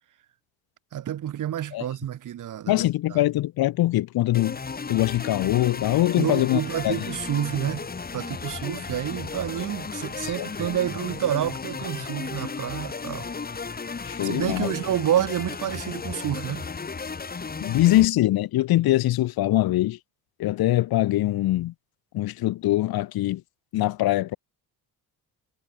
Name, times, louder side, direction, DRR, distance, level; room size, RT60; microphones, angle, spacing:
voice 1, 0.9-2.8 3.1-3.2 6.2-7.9 8.1-13.3 14.2-16.7, right 11 dB, 55° right, 3.5 m, -29 dB
voice 2, 2.7-4.6 4.9-7.0 10.2-10.5 14.0-14.7 17.6-20.0 20.4-21.7 22.1-23.4 23.7-24.4, left 15 dB, 75° left, 1.5 m, -23 dB
sound 1, 4.3-18.1, left 5 dB, 25° left, 7.4 m, -34 dB
cardioid pair, 145°, 37 cm